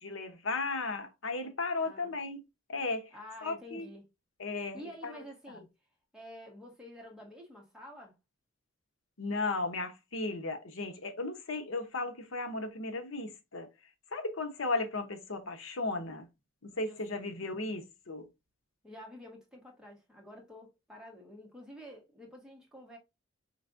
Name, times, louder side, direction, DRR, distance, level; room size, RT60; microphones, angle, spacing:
voice 1, 0.0-2.4 2.7-3.1 3.4-3.9 4.4-5.6 9.2-13.7 14.1-16.3 16.6-18.3, left 3 dB, 85° left, 0.9 m, -35 dB
voice 2, 1.8-2.2 3.1-4.0 4.7-5.7 6.1-8.2 16.7-17.3 18.8-23.0, equal, 5° right, 1.2 m, -49 dB
4.9 x 3.3 x 2.5 m
head